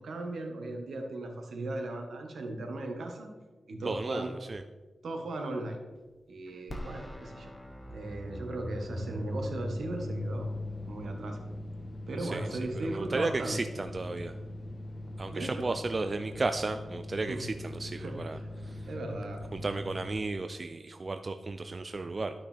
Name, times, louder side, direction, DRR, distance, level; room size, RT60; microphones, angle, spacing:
voice 1, 0.0-3.3 3.7-4.3 5.0-5.8 6.3-7.5 7.9-10.5 10.9-11.4 12.1-13.6 15.3-15.7 17.3-17.4 18.0-18.5 18.9-19.4, right 2 dB, 80° right, 3 dB, 1.4 m, -37 dB
voice 2, 3.8-4.6 12.2-12.6 12.9-14.3 15.2-18.9 19.5-22.3, right 3 dB, 40° right, 8 dB, 0.4 m, -34 dB
sound 1, 6.7-6.8 7.1-20.1, left 1 dB, 30° left, 1.3 m, -41 dB
sound 2, 6.7-15.0, left 1 dB, 5° left, 0.8 m, -53 dB
12.5 x 5.9 x 3.4 m, 1.3 s
wide cardioid pair, 85°, 0 cm